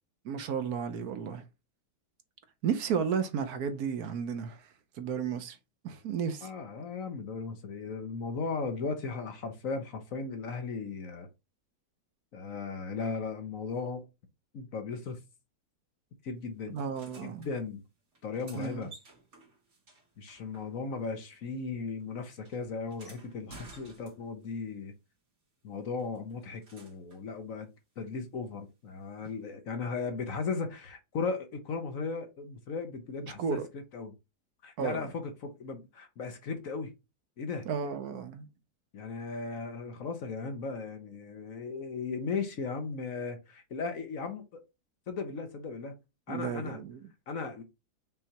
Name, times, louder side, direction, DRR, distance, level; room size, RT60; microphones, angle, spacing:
voice 1, 0.2-1.4 2.6-4.6 5.0-5.6 5.8-6.5 16.7-17.5 18.6-18.9 33.2-33.7 34.8-35.1 37.6-38.5 46.3-47.0, right 7 dB, 65° right, 1.2 m, -33 dB
voice 2, 6.4-11.3 12.3-14.1 14.5-15.2 16.2-16.8 17.2-17.8 18.2-18.9 20.2-24.9 25.6-27.7 28.0-34.1 34.6-36.9 37.4-37.6 38.9-44.6 45.1-45.9 46.3-46.8 47.3-47.6, left 4 dB, 60° left, 1.2 m, -36 dB
sound 1, 16.8-17.5 18.1-21.1 21.4-24.5 26.0-27.3 29.2-29.3, right 3 dB, 45° right, 2.3 m, -55 dB
5.6 x 3.3 x 2.9 m
omnidirectional pair, 1.8 m